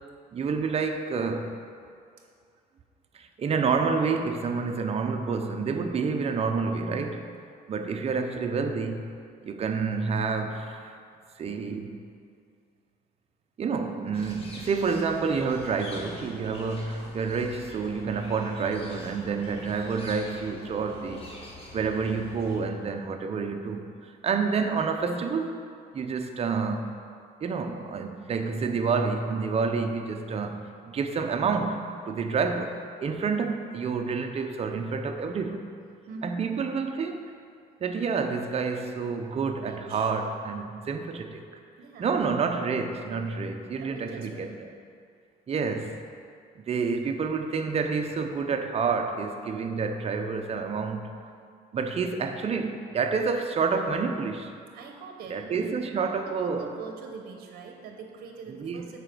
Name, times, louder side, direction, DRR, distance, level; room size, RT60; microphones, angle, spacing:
voice 1, 0.3-1.6 3.1-7.3 7.7-9.0 9.4-10.9 11.4-12.0 13.6-21.3 21.7-25.5 25.9-26.9 27.4-35.7 36.2-37.2 37.8-41.4 42.0-44.5 45.5-45.9 46.7-51.1 51.7-54.5 55.3-56.7 58.6-58.8, right 5 dB, 35° right, 5 dB, 0.7 m, -28 dB
voice 2, 7.7-8.1 36.1-36.4 39.6-40.1 41.8-42.2 43.8-44.6 54.7-59.0, right 4 dB, 60° right, 3 dB, 0.9 m, -43 dB
sound 1, 14.1-22.6, left 1 dB, 35° left, 1.6 m, -45 dB
8.0 x 5.0 x 6.1 m, 2.3 s
cardioid pair, 110°, 17 cm